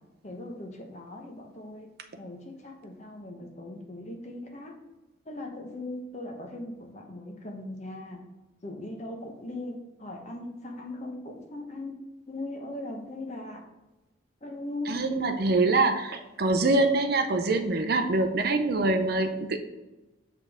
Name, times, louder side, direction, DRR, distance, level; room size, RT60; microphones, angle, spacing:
voice 1, 0.2-4.8 5.2-8.2 8.6-12.0 12.3-13.6 14.4-15.1, left 2 dB, 35° left, 2 dB, 0.9 m, -39 dB
voice 2, 14.9-19.6, right 2 dB, 50° right, 7 dB, 0.6 m, -24 dB
6.6 x 5.2 x 3.5 m, 1.1 s
head